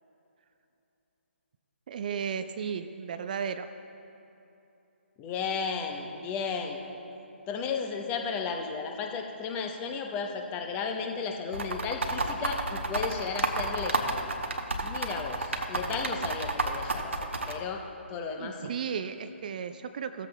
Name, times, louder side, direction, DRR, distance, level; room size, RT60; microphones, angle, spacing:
voice 1, 1.9-3.7 18.4-20.3, right 7 dB, 40° right, 10 dB, 0.4 m, -34 dB
voice 2, 5.2-6.8 7.5-14.3 14.8-17.1 17.5-17.8 18.1-18.7, left 5 dB, 20° left, 3 dB, 0.9 m, -34 dB
sound 1, 11.5-17.5, right 3 dB, 75° right, 1.1 m, -30 dB
16.5 x 14.0 x 2.3 m, 2.9 s
figure-of-eight pair, 140°, 7 cm